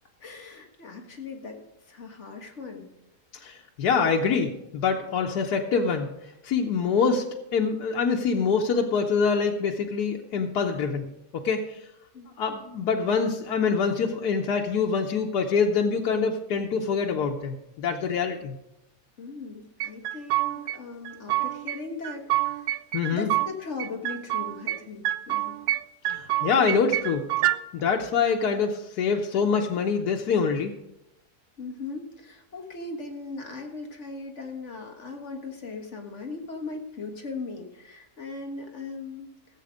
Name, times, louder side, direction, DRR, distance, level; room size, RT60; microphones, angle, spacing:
voice 1, 0.2-2.9 12.1-12.3 19.2-22.7 23.1-25.6 31.6-39.3, left 3 dB, 50° left, 2 dB, 1.8 m, -38 dB
voice 2, 3.4-6.1 6.4-7.2 7.5-11.8 12.4-18.6 22.9-23.3 26.1-27.3 27.7-30.7, left 5 dB, 90° left, 1 dB, 1.4 m, -25 dB
sound 1, 19.8-20.8 21.1-21.8 22.0-23.5 23.8-24.8 25.1-25.8 26.1-27.6, right 15 dB, 90° right, 1.1 m, -27 dB
15.5 x 7.6 x 5.1 m, 0.88 s
omnidirectional pair, 1.6 m